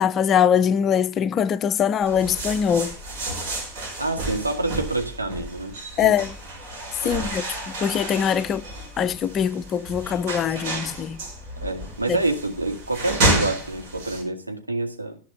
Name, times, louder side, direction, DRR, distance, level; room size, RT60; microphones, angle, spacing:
voice 1, 0.0-3.0 6.0-6.3 7.0-8.6 9.0-11.2 12.1-12.2, left 8 dB, 30° left, 0.5 m, -22 dB
Wood Milling a Door and Vacuum Cleaning, 2.0-14.2, right 2 dB, 45° right, 5.3 m, -30 dB
voice 2, 4.0-6.2 7.0-7.3 11.6-15.2, right 2 dB, 85° right, 2.2 m, -27 dB
14.5 x 5.9 x 6.4 m
figure-of-eight pair, 90°, 0 cm